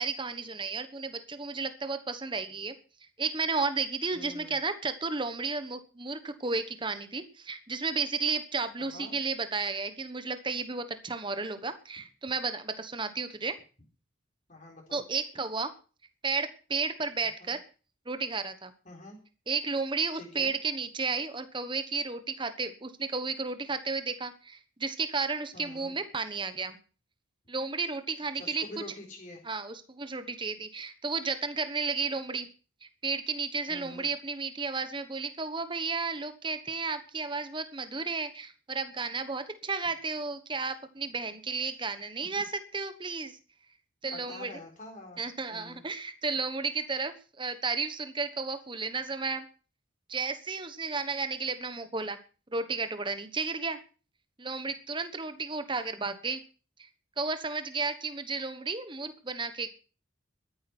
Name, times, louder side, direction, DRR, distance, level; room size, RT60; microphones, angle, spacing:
voice 1, 0.0-2.7 3.2-13.5 14.9-15.7 16.2-17.6 18.1-18.7 19.5-26.8 27.5-28.6 29.4-32.5 33.0-43.4 44.0-44.5 45.2-49.4 50.1-52.2 52.5-53.8 54.4-56.4 57.2-59.7, right 4 dB, 25° right, 10 dB, 1.2 m, -33 dB
voice 2, 4.1-4.6 8.8-9.1 14.5-15.0 17.4-17.5 18.9-19.2 20.1-20.5 25.5-25.9 28.3-29.4 33.7-34.1 44.1-45.2 45.5-45.8, left 1 dB, 35° left, 0 dB, 4.1 m, -46 dB
13.5 x 9.9 x 6.1 m, 0.37 s
head